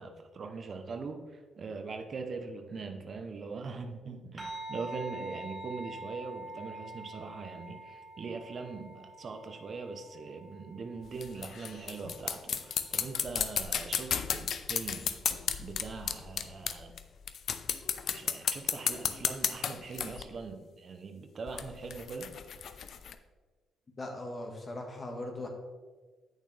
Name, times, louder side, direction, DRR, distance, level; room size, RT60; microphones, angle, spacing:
voice 1, 0.0-15.2 15.6-16.9 18.1-22.3, right 4 dB, 45° right, 6 dB, 0.8 m, -41 dB
sound 1, 4.4-13.1, right 2 dB, 25° right, 2.3 m, -46 dB
sound 2, 11.0-17.0 17.3-20.2 21.5-23.1, left 7 dB, 60° left, 0.5 m, -33 dB
voice 2, 24.0-25.5, left 2 dB, 35° left, 1 dB, 1.6 m, -39 dB
8.4 x 6.5 x 3.3 m, 1.4 s
cardioid pair, 90°, 0 cm